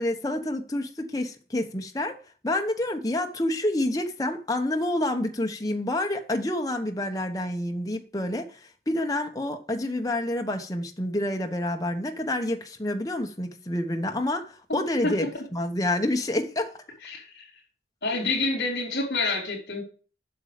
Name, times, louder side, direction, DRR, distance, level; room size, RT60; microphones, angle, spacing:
voice 1, 0.0-2.2 2.4-16.7, left 1 dB, 20° left, 1.0 m, -28 dB
voice 2, 15.0-15.4 17.0-17.5 18.0-19.8, left 3 dB, 65° left, 3.8 m, -28 dB
8.2 x 6.2 x 5.0 m
head